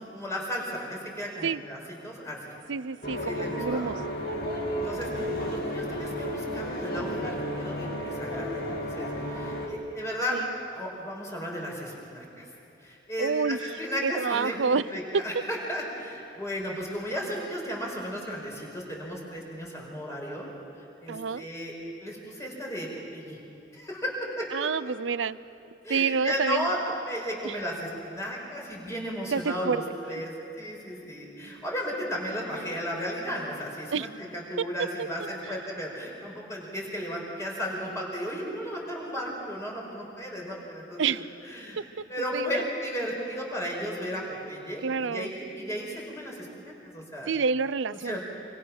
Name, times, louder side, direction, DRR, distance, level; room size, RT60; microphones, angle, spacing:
voice 1, 0.1-2.4 3.2-3.9 4.8-5.1 5.4-10.3 10.7-12.5 12.8-20.5 21.0-21.7 22.0-23.4 23.7-24.9 25.8-26.8 27.0-29.8 30.1-41.8 42.1-47.3 48.0-48.2, equal, 15° left, -2 dB, 4.9 m, -34 dB
voice 2, 2.7-4.0 10.3-10.5 13.2-13.6 14.0-14.8 21.1-21.5 24.5-25.4 25.9-26.7 27.4-27.6 29.3-29.8 33.9-34.1 34.6-34.7 35.0-35.1 35.5-35.6 41.0-41.2 41.8-42.0 42.3-42.7 44.8-45.3 47.3-48.2, right 5 dB, 85° right, 17 dB, 0.6 m, -28 dB
sound 1, 3.0-9.7, equal, 55° left, 2.9 m, -32 dB
27.0 x 26.5 x 6.1 m, 2.9 s
head